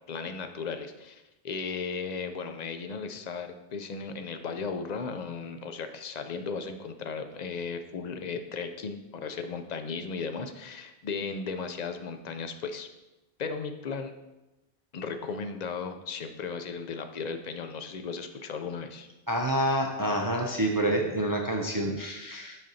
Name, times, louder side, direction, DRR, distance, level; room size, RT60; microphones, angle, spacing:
voice 1, 0.1-12.9 13.4-14.1 14.9-19.1, left 5 dB, 55° left, 7 dB, 0.6 m, -36 dB
voice 2, 19.3-22.6, right 1 dB, 30° right, 1 dB, 0.4 m, -28 dB
7.7 x 5.1 x 2.7 m, 1.0 s
omnidirectional pair, 1.0 m